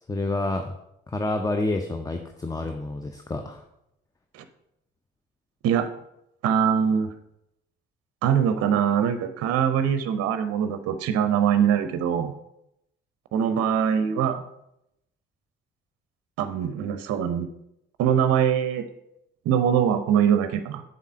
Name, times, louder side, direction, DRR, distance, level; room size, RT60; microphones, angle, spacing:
voice 1, 0.1-0.7 1.1-3.6, left 2 dB, 10° left, 6 dB, 0.6 m, -28 dB
voice 2, 6.4-7.1 8.2-12.3 13.3-14.5 16.4-17.5 18.0-18.9 19.5-20.8, right 8 dB, 50° right, 10 dB, 0.6 m, -23 dB
7.2 x 4.0 x 5.6 m, 0.81 s
figure-of-eight pair, 45°, 31 cm